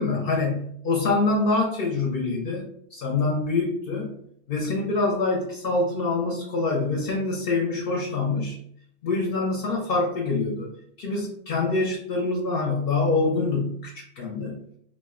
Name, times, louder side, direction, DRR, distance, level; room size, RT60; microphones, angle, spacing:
voice 1, 0.0-2.7 2.9-4.1 4.5-8.6 9.0-10.7 11.0-14.6, left 3 dB, 60° left, -1 dB, 0.7 m, -25 dB
2.4 x 2.1 x 3.5 m, 0.69 s
omnidirectional pair, 1.1 m